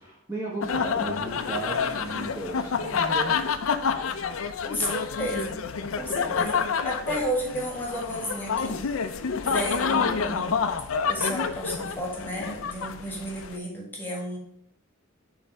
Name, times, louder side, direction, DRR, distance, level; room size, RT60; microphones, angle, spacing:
voice 1, 0.0-3.4 6.1-6.5, right 2 dB, 10° right, -5 dB, 1.1 m, -35 dB
sound 1, 0.6-13.5, left 6 dB, 80° left, 0.5 m, -28 dB
voice 2, 4.6-5.6 6.0-6.6 6.8-9.1 9.4-10.6 11.1-14.4, equal, 10° left, -2 dB, 1.6 m, -32 dB
6.6 x 3.3 x 4.6 m, 0.71 s
head